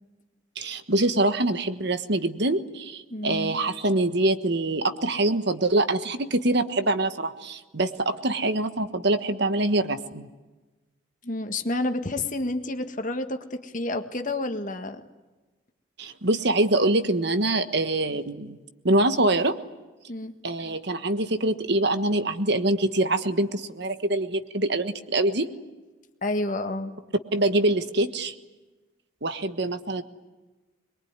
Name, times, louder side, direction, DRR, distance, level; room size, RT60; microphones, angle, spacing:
voice 1, 0.6-10.3 16.0-18.6 18.8-19.6 20.4-25.5 27.3-28.3 29.2-30.0, right 2 dB, 55° right, 9 dB, 1.4 m, -24 dB
voice 2, 3.1-3.6 11.2-15.0 20.1-20.3 26.2-26.9, left 2 dB, 40° left, 7 dB, 1.8 m, -29 dB
23.5 x 22.5 x 9.7 m, 1.2 s
head